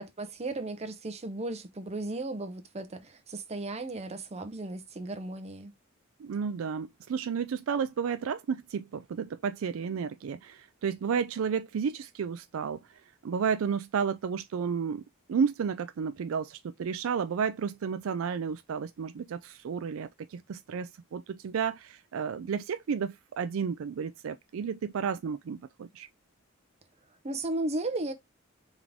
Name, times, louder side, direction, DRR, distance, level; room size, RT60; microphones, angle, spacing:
voice 1, 0.0-5.7 27.2-28.1, right 2 dB, 30° right, 0.7 m, -35 dB
voice 2, 6.2-12.8 13.2-15.0 15.3-26.1, right 6 dB, 70° right, 0.4 m, -32 dB
3.7 x 3.6 x 3.4 m
head